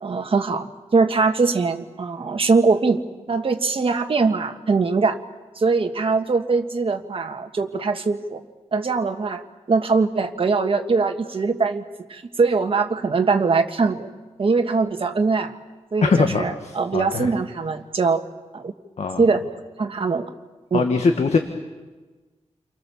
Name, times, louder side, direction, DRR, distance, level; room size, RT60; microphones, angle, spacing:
voice 1, 0.0-3.0 3.3-5.2 5.5-8.4 8.7-11.8 12.1-14.1 14.4-15.5 15.9-18.2 18.5-18.7 19.2-19.4 19.8-20.3 20.7-20.8, right 4 dB, 50° right, 5 dB, 1.6 m, -22 dB
voice 2, 16.0-17.3 19.0-19.2 20.7-21.4, left 4 dB, 70° left, 5 dB, 1.6 m, -21 dB
29.5 x 23.5 x 7.2 m, 1.3 s
wide cardioid pair, 130°, 12 cm